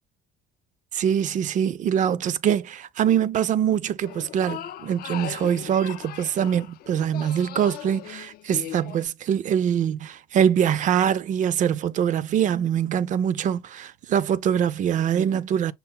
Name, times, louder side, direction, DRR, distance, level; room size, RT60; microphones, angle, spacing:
voice 1, 0.9-15.7, right 9 dB, 50° right, 0.4 m, -23 dB
sound 1, 4.1-9.1, left 12 dB, 65° left, 0.4 m, -39 dB
5.6 x 2.1 x 3.6 m
cardioid pair, 110°, 17 cm